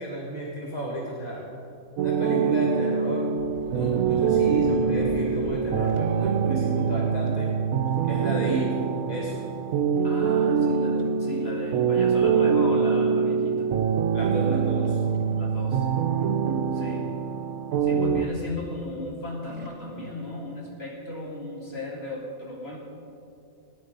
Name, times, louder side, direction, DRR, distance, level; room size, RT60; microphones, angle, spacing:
voice 1, 0.0-1.5 2.0-3.3 3.7-7.5 8.0-8.7 9.1-9.4 14.1-15.0, right 1 dB, 30° left, -4 dB, 1.9 m, -33 dB
sound 1, 2.0-18.3, right 6 dB, 80° right, 1.1 m, -24 dB
sound 2, 3.4-6.6 7.3-7.5 7.8-8.3 8.5-8.6 9.4-9.5 10.0-10.1 10.6-11.1 11.9-12.0 14.8-15.8 17.9-18.9 19.4-20.2, right 2 dB, 25° right, 1.2 m, -39 dB
voice 2, 10.0-13.8 15.4-15.9 16.7-17.1 17.8-22.8, left 1 dB, 45° left, -3 dB, 2.6 m, -36 dB
17.0 x 10.0 x 5.2 m, 2.6 s
omnidirectional pair, 1.4 m